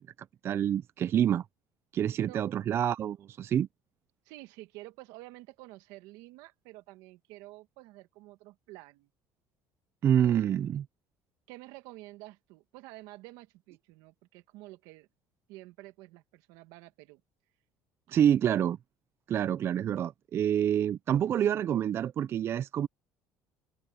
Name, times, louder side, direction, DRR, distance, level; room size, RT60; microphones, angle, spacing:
voice 1, 0.4-1.4 1.9-3.7 10.0-10.8 18.1-18.8 19.3-22.9, right 10 dB, 40° right, 0.4 m, -27 dB
voice 2, 4.2-9.1 10.2-10.8 11.5-15.1 15.5-17.2, right 19 dB, 85° right, 1.6 m, -50 dB
cardioid pair, 115°, 6 cm